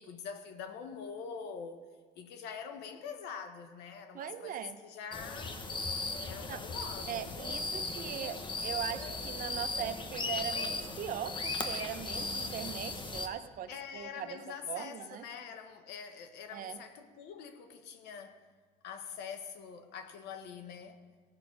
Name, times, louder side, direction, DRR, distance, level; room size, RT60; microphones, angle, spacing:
voice 1, 0.0-5.6 6.2-7.3 13.7-18.5 18.8-21.1, left 6 dB, 80° left, 1.0 m, -45 dB
voice 2, 4.1-4.8 6.5-6.6 7.1-14.4 14.7-15.2 16.5-16.8, right 10 dB, 55° right, 0.7 m, -40 dB
sound 1, 5.1-13.3, left 3 dB, 30° left, 1.0 m, -37 dB
16.0 x 6.1 x 5.0 m
cardioid pair, 110°, 17 cm